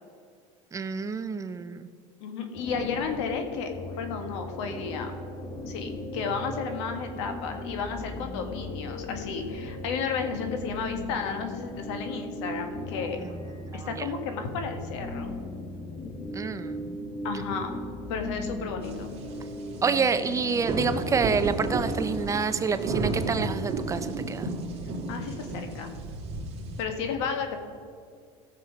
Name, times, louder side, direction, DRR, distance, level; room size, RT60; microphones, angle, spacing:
voice 1, 0.7-1.9 13.6-14.1 16.3-17.0 19.8-24.5, right 5 dB, 20° right, 11 dB, 0.5 m, -28 dB
voice 2, 2.2-3.7 4.0-5.1 5.7-13.2 13.7-15.4 17.2-17.7 18.1-19.1 25.1-25.9 26.8-27.7, left 5 dB, 85° left, 5 dB, 1.6 m, -33 dB
sound 1, 2.5-22.3, left 1 dB, 35° left, 1.6 m, -37 dB
sound 2, 18.8-26.8, right 3 dB, 45° right, 2.1 m, -33 dB
16.0 x 6.7 x 5.0 m, 2.3 s
supercardioid pair, 120°, 14 cm